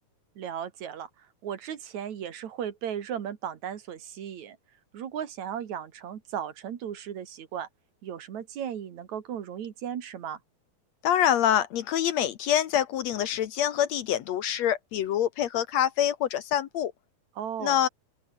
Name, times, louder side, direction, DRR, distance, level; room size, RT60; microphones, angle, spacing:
voice 1, 0.4-4.6 4.9-7.7 8.0-10.4 17.4-17.8, right 9 dB, 65° right, 3.1 m, -36 dB
voice 2, 11.0-16.9 17.6-17.9, left 10 dB, 65° left, 2.0 m, -25 dB
open air
omnidirectional pair, 3.6 m